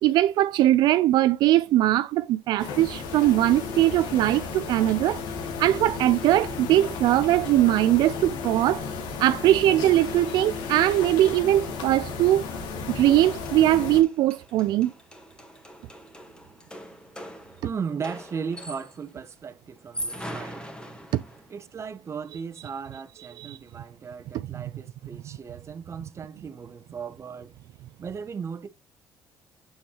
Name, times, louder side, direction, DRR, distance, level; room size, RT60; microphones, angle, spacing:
voice 1, 0.0-5.2 5.6-8.8 9.2-12.4 12.9-14.9 21.1-21.2 23.4-23.6 24.5-24.6, right 14 dB, 75° right, 0.4 m, -21 dB
sound 1, 2.6-14.0, left 5 dB, 85° left, 1.7 m, -34 dB
sound 2, 13.5-19.1 19.8-21.6, equal, 10° left, 1.8 m, -41 dB
voice 2, 17.6-20.7 21.5-27.5 28.0-28.7, right 6 dB, 40° right, 1.0 m, -36 dB
7.2 x 6.2 x 2.9 m
cardioid pair, 85°, 7 cm